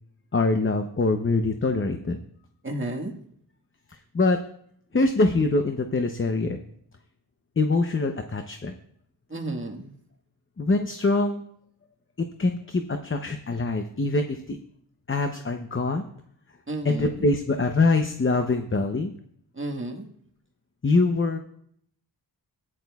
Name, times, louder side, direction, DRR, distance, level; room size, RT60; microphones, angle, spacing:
voice 1, 0.3-2.2 4.1-4.4 4.9-6.6 7.6-8.7 10.6-11.4 12.2-14.6 15.1-16.0 16.8-19.1 20.8-21.4, left 3 dB, 30° left, 6 dB, 0.8 m, -24 dB
voice 2, 2.6-3.1 9.3-9.9 16.7-17.3 19.5-20.1, right 2 dB, 30° right, 1 dB, 1.6 m, -32 dB
15.0 x 10.0 x 2.4 m, 0.67 s
wide cardioid pair, 65°, 42 cm